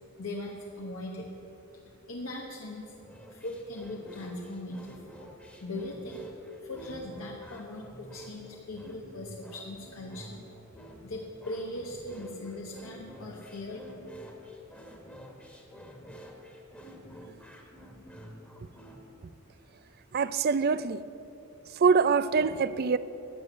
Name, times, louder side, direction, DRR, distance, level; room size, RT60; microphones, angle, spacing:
voice 1, 0.2-1.3 1.7-1.8 2.1-2.9 3.3-5.0 5.6-10.4 11.0-13.8, left 1 dB, 70° left, 1.3 m, -39 dB
sound 1, 3.0-19.0, equal, 5° left, 1.6 m, -48 dB
voice 2, 20.1-21.0 21.8-23.0, right 5 dB, 45° right, 0.4 m, -24 dB
13.0 x 8.5 x 8.3 m
head